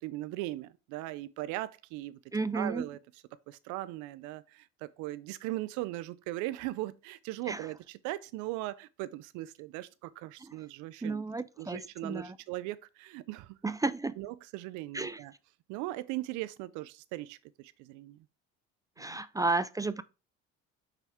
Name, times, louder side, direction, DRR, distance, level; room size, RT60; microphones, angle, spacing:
voice 1, 0.0-2.2 2.5-3.0 3.5-11.2 11.6-13.6 14.2-15.3 15.7-18.2 19.0-19.4, right 17 dB, 80° right, 0.6 m, -39 dB
voice 2, 2.3-2.9 7.5-7.7 10.4-10.5 11.0-12.4 13.6-14.2 14.9-15.2 19.0-20.0, right 3 dB, 10° right, 0.4 m, -33 dB
5.8 x 5.7 x 3.6 m
supercardioid pair, 85°, 29 cm